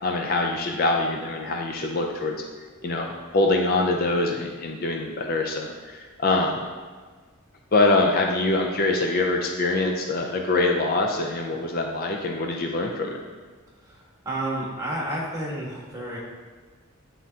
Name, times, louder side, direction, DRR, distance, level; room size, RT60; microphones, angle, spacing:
voice 1, 0.0-2.4 2.8-6.6 7.7-13.2, left 2 dB, 45° left, 2 dB, 0.5 m, -24 dB
voice 2, 13.8-16.2, right 1 dB, 15° right, -4 dB, 1.3 m, -31 dB
9.5 x 3.6 x 2.8 m, 1.5 s
head